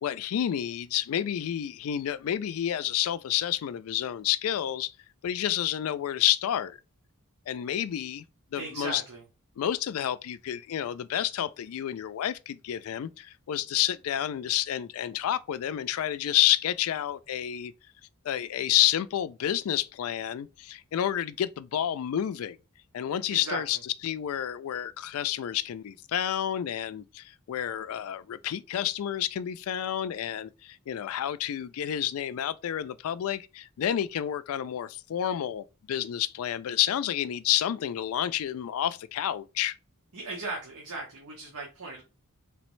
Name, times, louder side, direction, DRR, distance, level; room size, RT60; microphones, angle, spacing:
voice 1, 0.0-4.9 5.2-6.8 7.5-8.2 8.5-9.0 9.6-17.7 18.2-22.6 22.9-39.7, left 11 dB, 70° left, 0.3 m, -29 dB
voice 2, 8.5-9.2 23.3-23.6 40.1-42.0, right 3 dB, 85° right, 1.0 m, -37 dB
3.3 x 3.1 x 3.1 m
head